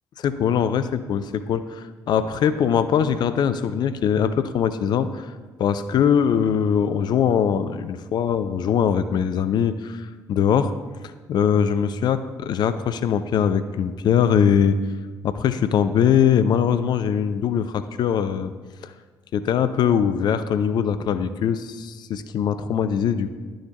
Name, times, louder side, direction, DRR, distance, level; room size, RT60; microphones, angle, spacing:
voice 1, 0.2-5.3 5.6-10.7 11.3-14.8 15.2-18.5 18.8-18.9 19.3-23.3, left 8 dB, 45° left, 12 dB, 0.4 m, -21 dB
11.5 x 6.3 x 3.0 m, 1.4 s
figure-of-eight pair, 45°, 10 cm